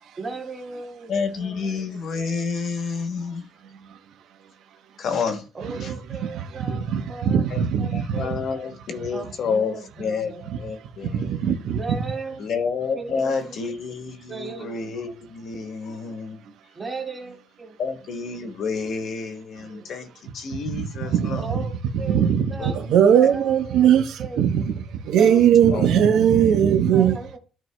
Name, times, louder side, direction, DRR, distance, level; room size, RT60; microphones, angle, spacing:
voice 1, 0.2-2.0 5.5-6.8 7.1-7.4 7.8-8.3 9.1-10.4 11.7-12.5 12.9-13.6 14.3-14.7 16.7-17.8 19.6-19.9 21.3-22.8 23.1-23.9 24.2-24.4 25.2-25.4 25.7-26.2 26.9-27.4, right 4 dB, 20° right, 2.0 m, -36 dB
voice 2, 1.1-3.4 5.0-5.4 5.8-5.9 6.7-6.8 7.5-7.6 7.9-10.3 10.6-11.5 12.4-16.4 17.8-21.4 22.6-22.7 25.2-25.9, left 5 dB, 50° left, 1.1 m, -29 dB
voice 3, 6.3-8.4 11.0-12.0 19.7-19.8 20.6-21.4 21.9-22.5 22.7-27.2, right 9 dB, 65° right, 0.8 m, -20 dB
13.0 x 4.5 x 2.2 m
cardioid pair, 160°, 0 cm